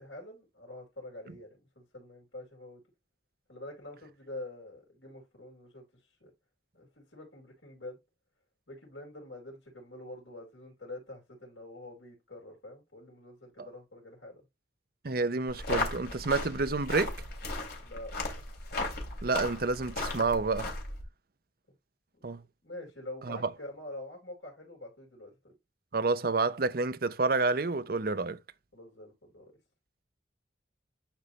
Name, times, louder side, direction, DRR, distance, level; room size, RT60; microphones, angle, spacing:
voice 1, 0.0-2.8 3.5-6.3 6.7-8.0 8.7-14.4 17.8-18.1 22.2-22.3 22.6-25.5 28.7-29.5, left 1 dB, 80° left, 4.8 m, -46 dB
voice 2, 15.0-17.2 19.2-20.7 22.2-22.4 23.2-23.5 25.9-28.4, right 3 dB, 50° right, 0.7 m, -29 dB
sound 1, 15.5-21.0, left 2 dB, 55° left, 3.1 m, -36 dB
11.5 x 4.3 x 3.2 m
head